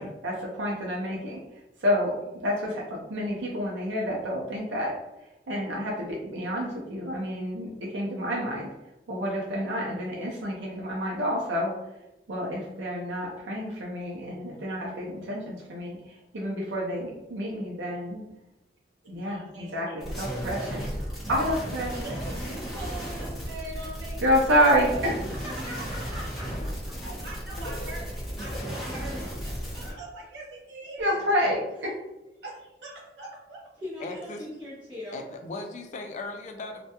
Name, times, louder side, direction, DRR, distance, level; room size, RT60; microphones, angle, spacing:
voice 1, 0.0-1.4 1.8-4.9 5.5-8.7 9.1-11.7 12.3-18.2 19.1-20.9 21.3-21.9 24.2-25.2 31.0-31.9, equal, 85° right, -3 dB, 0.5 m, -28 dB
voice 2, 19.0-20.0 21.9-24.2 24.9-25.0 25.7-26.0 27.1-31.3 32.4-33.6 34.1-34.2, right 2 dB, 65° right, -4 dB, 0.9 m, -42 dB
sound 1, 20.0-29.9, equal, ahead, 0.9 m, -34 dB
voice 3, 20.6-21.0 25.4-26.5 28.5-28.6 33.8-35.2, left 1 dB, 25° right, -9 dB, 0.6 m, -40 dB
voice 4, 27.6-28.0 34.0-34.5 35.1-36.8, left 2 dB, 40° left, 4 dB, 0.3 m, -38 dB
2.2 x 2.1 x 2.8 m, 0.95 s
head